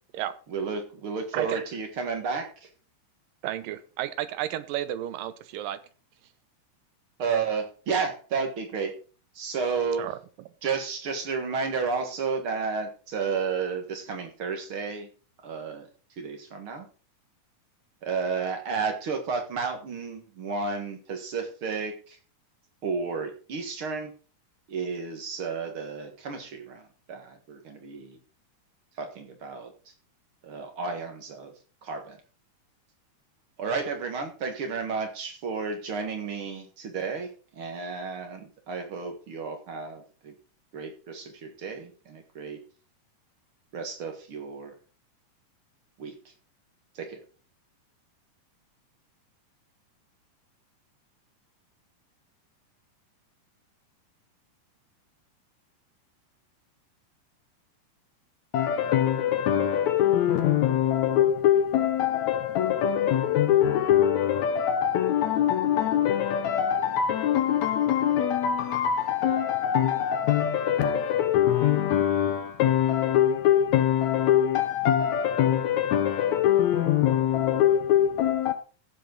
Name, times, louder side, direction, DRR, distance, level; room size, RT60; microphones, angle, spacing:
voice 1, 0.5-2.7 7.2-9.0 9.4-10.0 10.6-15.1 15.4-15.9 16.2-16.9 18.0-22.2 22.8-24.1 24.7-26.8 27.1-28.2 29.0-29.7 30.4-31.5 31.8-32.2 33.6-40.3 40.7-42.6 43.7-44.7 46.0-46.2 47.0-47.2, right 5 dB, 45° right, 2.0 m, -32 dB
voice 2, 3.4-5.8 10.0-10.2, right 12 dB, 90° right, 2.5 m, -32 dB
voice 3, 58.5-78.5, left 10 dB, 75° left, 1.8 m, -23 dB
15.5 x 7.5 x 3.9 m
omnidirectional pair, 3.9 m